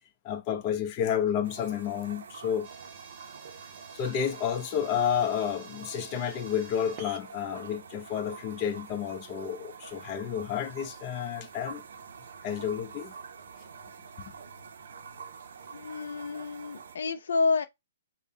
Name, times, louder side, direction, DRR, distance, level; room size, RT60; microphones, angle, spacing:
voice 1, 0.2-2.7 3.9-11.8 12.4-13.1 14.2-14.3, left 8 dB, 25° left, 0.6 m, -31 dB
sound 1, 1.4-17.0, right 6 dB, 70° right, 0.5 m, -46 dB
sound 2, 2.6-10.9, right 5 dB, 20° right, 0.8 m, -53 dB
voice 2, 15.7-17.6, left 4 dB, 85° left, 0.4 m, -29 dB
5.2 x 2.1 x 2.7 m
hypercardioid pair, 165°, 0 cm